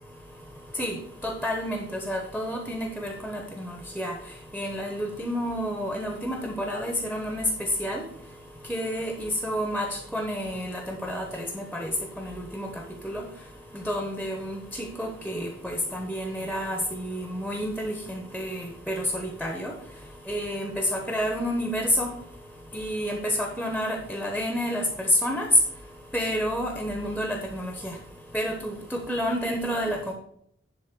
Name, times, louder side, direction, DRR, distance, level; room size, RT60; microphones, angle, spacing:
voice 1, 1.2-4.1 4.5-7.5 7.8-8.0 8.7-12.7 13.0-13.2 13.8-19.7 20.3-22.1 22.7-25.5 26.1-27.9 28.3-30.1, equal, 5° right, 2 dB, 1.0 m, -30 dB
11.0 x 3.7 x 6.8 m, 0.68 s
head